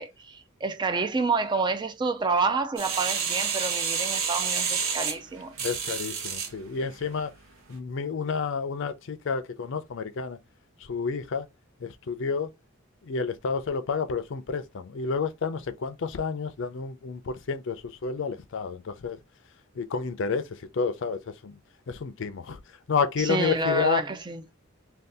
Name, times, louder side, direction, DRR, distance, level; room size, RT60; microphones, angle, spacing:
voice 1, 0.0-5.5 23.2-24.4, right 3 dB, 20° right, 0.3 m, -28 dB
sound 1, 2.8-6.5 7.1-7.2, right 6 dB, 75° right, 0.8 m, -29 dB
voice 2, 5.6-7.3 7.7-10.4 10.8-11.5 11.8-12.5 13.0-19.2 19.7-21.6 21.9-22.6 22.9-24.0, left 5 dB, 65° left, 0.5 m, -30 dB
2.7 x 2.3 x 3.4 m
head